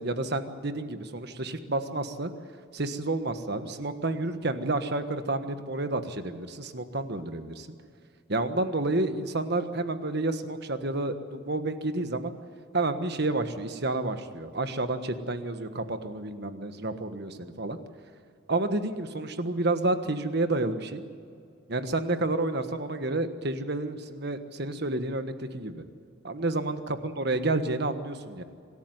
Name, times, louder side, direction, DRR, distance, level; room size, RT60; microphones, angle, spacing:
voice 1, 0.0-2.3 2.7-7.7 8.3-12.4 12.7-17.8 18.5-21.0 21.7-25.8 26.2-28.4, right 2 dB, 50° right, 9 dB, 1.4 m, -30 dB
25.5 x 13.5 x 9.6 m, 2.4 s
head